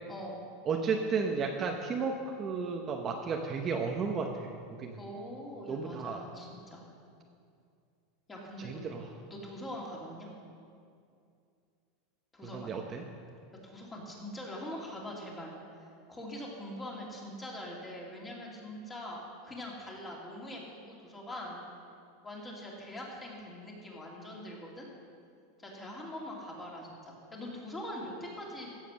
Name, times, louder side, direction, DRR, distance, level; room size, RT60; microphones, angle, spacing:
voice 1, 0.1-0.4 5.0-6.9 8.3-8.8 9.3-10.3 12.3-12.7 13.6-15.5 15.8-21.6 22.2-24.9 25.6-28.7, left 1 dB, 15° left, -3 dB, 2.7 m, -43 dB
voice 2, 0.7-4.5 4.8-5.0 5.7-6.2 8.6-9.0 12.5-13.0, right 5 dB, 25° right, 2 dB, 0.8 m, -33 dB
15.5 x 7.5 x 6.3 m, 2.4 s
supercardioid pair, 145°, 0 cm